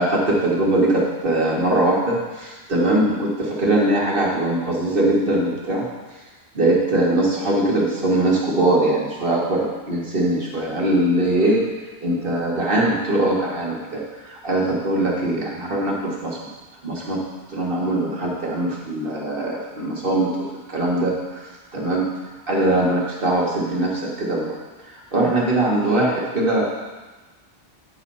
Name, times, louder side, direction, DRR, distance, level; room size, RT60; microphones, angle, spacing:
voice 1, 0.0-5.9 6.6-11.6 12.0-14.0 14.4-16.4 16.8-17.2 17.5-20.3 20.7-21.4 21.7-22.1 22.5-24.5 25.1-26.7, right 1 dB, 50° right, -3 dB, 1.8 m, -21 dB
9.4 x 4.1 x 5.6 m, 1.2 s
omnidirectional pair, 1.2 m